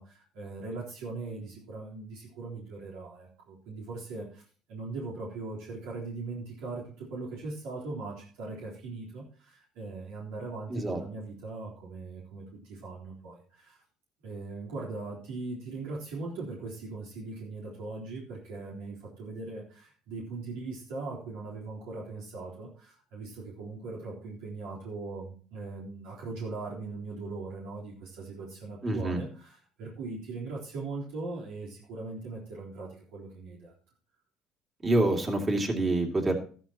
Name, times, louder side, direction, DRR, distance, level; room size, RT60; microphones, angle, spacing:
voice 1, 0.0-4.4 4.7-13.8 14.2-33.7, right 3 dB, 85° right, -5 dB, 3.8 m, -40 dB
voice 2, 28.8-29.2 34.8-36.4, right 2 dB, 25° right, 2 dB, 2.5 m, -26 dB
13.5 x 11.5 x 3.0 m, 0.42 s
cardioid pair, 110°, 0 cm